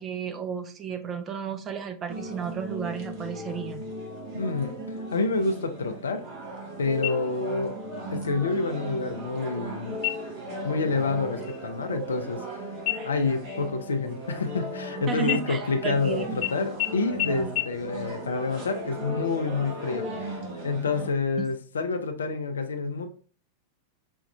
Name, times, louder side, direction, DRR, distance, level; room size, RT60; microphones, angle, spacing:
voice 1, 0.0-3.8 15.1-16.3 21.4-21.5, right 7 dB, 25° right, 6 dB, 0.6 m, -33 dB
sound 1, 2.1-21.1, right 1 dB, 45° right, 1.2 m, -37 dB
voice 2, 4.3-4.7 5.1-6.2 6.8-7.7 8.1-10.0 10.6-12.6 13.0-20.4 20.6-23.1, left 4 dB, 70° left, 7 dB, 0.5 m, -28 dB
sound 2, 7.0-7.7 8.1-8.2 8.7-9.3 9.9-10.5 10.9-11.1 11.4-12.5 12.9-14.9 15.2-16.0 16.4-16.5 16.8-16.9 17.2-17.3 17.6-17.7, left 16 dB, 35° left, 0.7 m, -32 dB
5.2 x 2.4 x 3.3 m, 0.41 s
figure-of-eight pair, 90°, 0 cm